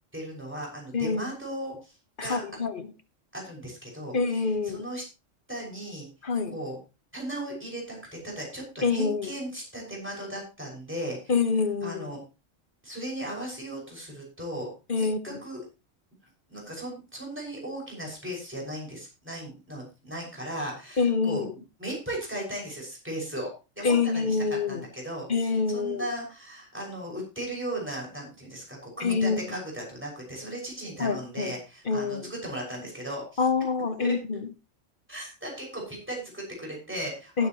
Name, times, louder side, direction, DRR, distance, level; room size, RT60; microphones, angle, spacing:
voice 1, 0.1-2.4 3.3-5.0 5.5-6.1 6.5-6.8 7.1-11.2 11.8-12.2 12.8-14.7 15.0-15.6 16.5-21.5 21.8-24.4 24.7-33.4 34.0-34.1 35.1-37.5, right 1 dB, 10° right, 6.3 m, -37 dB
voice 2, 0.9-1.3 2.2-2.9 4.1-4.9 6.2-6.6 8.8-9.3 11.3-12.1 14.9-15.4 21.0-21.5 23.8-24.9 25.3-26.1 29.0-29.4 31.0-31.5 31.9-32.3 33.4-34.5 37.4-37.5, left 4 dB, 45° left, 1.3 m, -26 dB
19.5 x 8.8 x 3.1 m
omnidirectional pair, 1.3 m